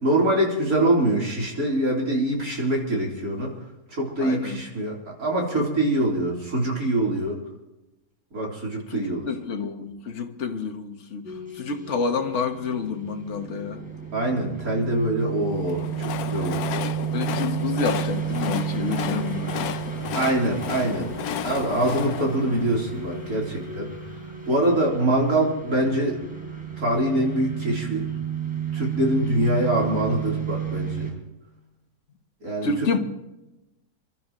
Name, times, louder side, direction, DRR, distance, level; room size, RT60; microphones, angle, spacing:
voice 1, 0.0-3.5 3.9-4.9 5.2-7.4 8.3-9.3 14.1-16.6 20.1-21.2 21.4-23.9 24.5-26.2 26.8-28.1 28.7-31.1 32.4-33.0, right 1 dB, 85° right, 4.1 m, -24 dB
voice 2, 4.2-4.6 8.9-13.8 17.1-19.7 22.1-22.2 29.4-29.7 32.6-33.0, left 5 dB, 55° left, 1.5 m, -29 dB
sound 1, 11.2-31.1, right 9 dB, 5° right, 3.8 m, -32 dB
Train, 15.5-23.6, left 10 dB, 90° left, 1.2 m, -33 dB
29.5 x 12.5 x 3.1 m
omnidirectional pair, 1.5 m